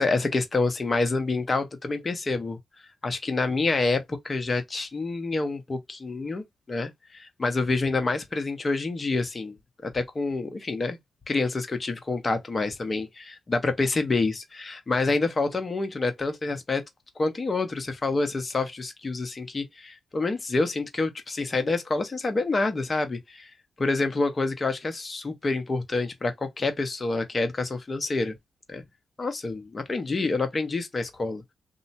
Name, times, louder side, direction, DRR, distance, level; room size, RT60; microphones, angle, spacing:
voice 1, 0.0-2.6 3.0-9.6 9.8-11.0 11.3-16.8 17.2-23.5 23.8-28.4 28.7-28.8 29.2-31.5, left 3 dB, 40° left, 0.9 m, -27 dB
2.7 x 2.1 x 2.7 m
supercardioid pair, 55°, 0 cm